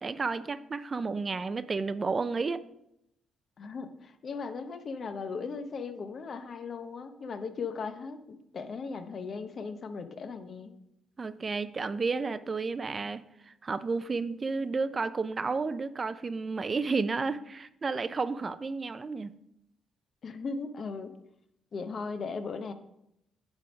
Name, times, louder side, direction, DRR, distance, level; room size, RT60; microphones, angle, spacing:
voice 1, 0.0-2.6 11.2-19.3, right 4 dB, 35° right, 0.4 m, -32 dB
voice 2, 3.6-10.8 20.2-21.1 21.7-22.7, left 4 dB, 50° left, 0.8 m, -37 dB
10.0 x 3.5 x 5.1 m
cardioid pair, 90°, 0 cm